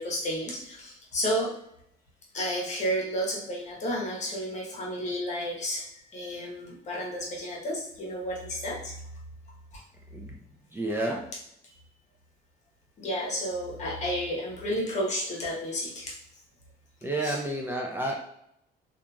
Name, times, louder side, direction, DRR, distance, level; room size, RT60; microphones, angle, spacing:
voice 1, 0.0-1.5 2.3-8.9 9.7-9.8 13.0-16.2 17.2-17.4, equal, 45° left, -3 dB, 1.0 m, -32 dB
voice 2, 10.7-11.2 17.0-18.2, right 1 dB, 10° right, -1 dB, 0.4 m, -30 dB
2.9 x 2.4 x 2.3 m, 0.75 s
cardioid pair, 110°, 17 cm